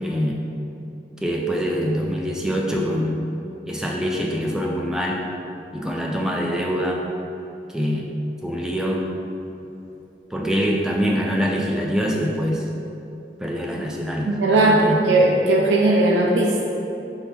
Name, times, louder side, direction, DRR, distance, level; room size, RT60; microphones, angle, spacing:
voice 1, 0.0-0.4 1.2-3.2 3.7-5.2 5.7-7.0 7.7-8.1 8.4-9.0 10.3-12.6 13.4-14.3 14.6-15.0, equal, 5° right, -2 dB, 0.3 m, -24 dB
voice 2, 14.3-16.6, right 2 dB, 85° right, -1 dB, 0.4 m, -18 dB
4.2 x 2.8 x 3.5 m, 2.8 s
head